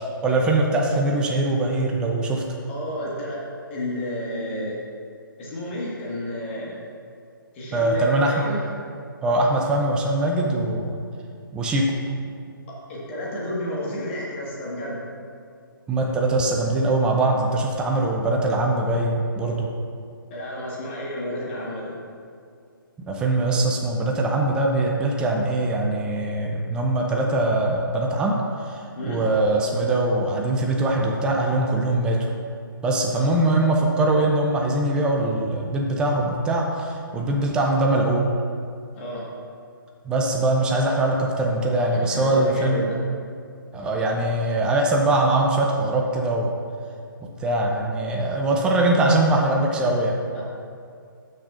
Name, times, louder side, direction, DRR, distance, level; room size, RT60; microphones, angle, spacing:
voice 1, 0.0-2.4 7.7-8.3 9.2-11.0 11.5-11.8 15.9-19.7 23.1-32.2 32.8-38.3 40.0-42.9 43.7-46.5 47.4-50.2, right 2 dB, 5° right, 0 dB, 0.5 m, -22 dB
voice 2, 2.7-3.4 3.7-4.8 5.4-6.8 7.5-8.6 12.9-15.0 20.3-21.9 28.9-29.2 33.1-33.3 38.9-39.3 41.9-43.0 50.3-50.4, left 1 dB, 30° left, -5 dB, 1.6 m, -31 dB
11.5 x 6.4 x 2.5 m, 2.4 s
figure-of-eight pair, 145°, 12 cm